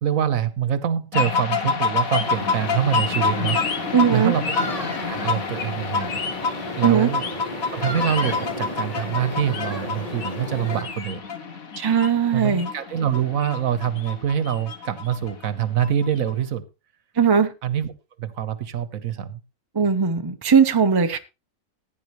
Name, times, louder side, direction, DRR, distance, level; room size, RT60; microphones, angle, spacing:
voice 1, 0.0-4.7 5.1-6.2 6.8-7.2 7.7-11.2 12.3-16.6 17.6-17.9 18.2-19.4, right 9 dB, 70° right, 1.4 m, -25 dB
sound 1, 1.1-16.3, left 5 dB, 75° left, 1.8 m, -28 dB
sound 2, 2.2-10.8, left 1 dB, 25° left, 1.9 m, -34 dB
voice 2, 3.9-4.3 6.8-7.1 11.8-12.7 17.2-17.5 19.7-21.2, right 6 dB, 20° right, 0.7 m, -19 dB
15.5 x 9.4 x 3.0 m
omnidirectional pair, 1.5 m